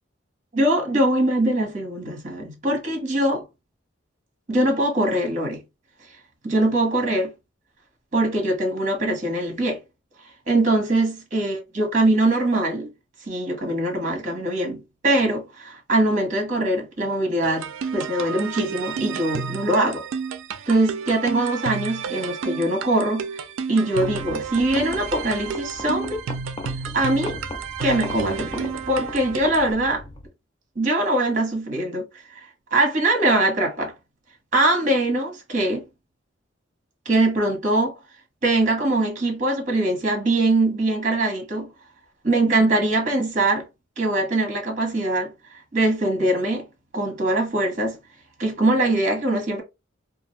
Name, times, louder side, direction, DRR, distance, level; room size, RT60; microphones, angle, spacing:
voice 1, 0.5-3.4 4.5-5.6 6.4-7.3 8.1-9.8 10.5-12.9 13.3-20.0 20.7-23.3 23.7-26.3 26.9-27.4 27.8-30.0 30.8-32.0 32.3-32.5 32.7-33.9 34.5-35.8 37.0-37.9 38.4-41.7 42.2-43.7 44.0-45.3 45.7-46.6 46.9-48.0 48.4-49.6, right 1 dB, 40° right, 1.0 m, -22 dB
sound 1, 17.4-29.7, right 6 dB, 85° right, 0.4 m, -31 dB
sound 2, 23.9-30.3, left 1 dB, 25° left, 0.4 m, -37 dB
2.4 x 2.2 x 3.0 m
head